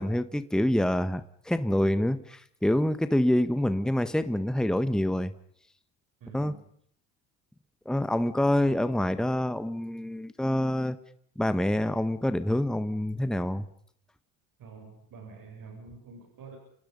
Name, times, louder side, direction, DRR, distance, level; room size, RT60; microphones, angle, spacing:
voice 1, 0.0-5.3 6.3-6.5 7.8-11.0 11.4-13.7, left 1 dB, ahead, 11 dB, 1.5 m, -26 dB
voice 2, 6.2-6.6 14.6-16.6, right 4 dB, 50° right, 2 dB, 7.6 m, -47 dB
30.0 x 27.5 x 5.6 m, 0.64 s
hypercardioid pair, 65°, 41 cm